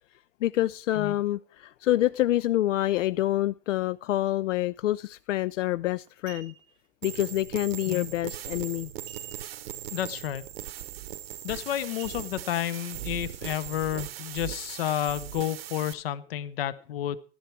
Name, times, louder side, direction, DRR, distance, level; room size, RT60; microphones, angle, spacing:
voice 1, 0.4-6.5 7.0-8.9, left 14 dB, 80° left, 0.5 m, -27 dB
sound 1, 5.4-5.6 6.1-6.9 9.1-9.7 10.1-10.2 10.6-10.9 12.0-12.8 13.3-13.4, right 10 dB, 15° right, 0.8 m, -51 dB
sound 2, 7.0-15.9, right 12 dB, 55° right, 0.8 m, -39 dB
voice 2, 9.9-10.4 11.4-17.2, left 12 dB, 50° left, 0.9 m, -31 dB
13.0 x 10.5 x 4.5 m
hypercardioid pair, 150°, 37 cm